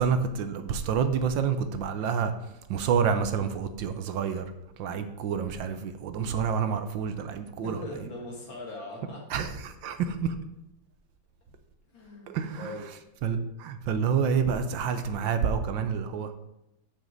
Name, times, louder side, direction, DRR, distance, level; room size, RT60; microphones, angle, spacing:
voice 1, 0.0-2.3 2.7-4.4 4.8-7.8 9.3-10.4 12.3-12.7 13.2-16.3, right 6 dB, 70° right, 9 dB, 1.5 m, -28 dB
voice 2, 7.6-9.2 11.9-12.9, left 1 dB, 70° left, -1 dB, 2.8 m, -40 dB
6.7 x 6.5 x 7.3 m, 0.87 s
omnidirectional pair, 2.2 m